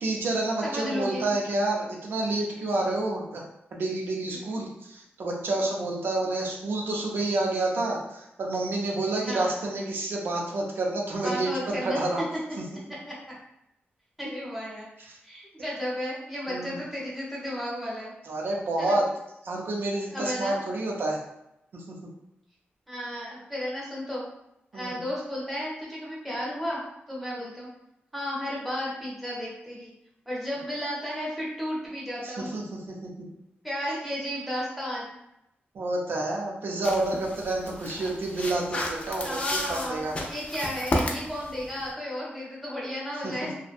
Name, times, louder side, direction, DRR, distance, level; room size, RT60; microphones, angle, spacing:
voice 1, 0.0-3.4 3.7-12.2 12.6-12.7 15.1-15.2 16.5-16.8 18.3-19.0 19.4-21.2 21.7-21.9 24.7-25.0 32.2-33.3 35.7-40.1 43.2-43.3, right 2 dB, 65° right, -1 dB, 0.5 m, -29 dB
voice 2, 0.6-1.3 2.7-2.9 4.3-4.6 9.2-9.5 11.2-12.0 13.1-13.2 14.2-14.9 15.2-18.1 18.8-18.9 20.1-20.6 22.9-24.2 24.7-26.8 27.1-27.7 28.1-29.9 30.3-32.7 33.6-35.1 39.2-43.5, equal, 5° right, -6 dB, 0.7 m, -33 dB
sound 1, 36.8-41.9, left 1 dB, 30° left, 0.3 m, -33 dB
2.6 x 2.1 x 2.4 m, 0.84 s
wide cardioid pair, 170°, 4 cm